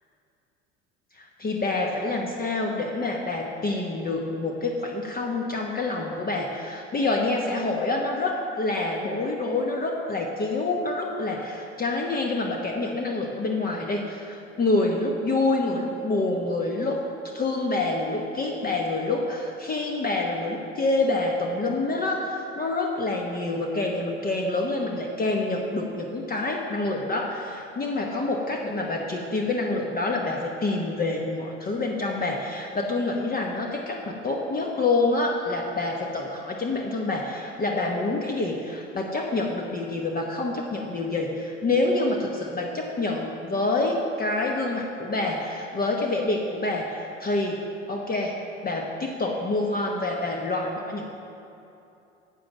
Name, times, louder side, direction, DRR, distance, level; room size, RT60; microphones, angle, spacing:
voice 1, 1.1-17.0 17.3-47.6 47.9-51.1, left 2 dB, 25° left, 1 dB, 1.1 m, -27 dB
8.4 x 7.4 x 7.3 m, 2.8 s
hypercardioid pair, 75°, 35 cm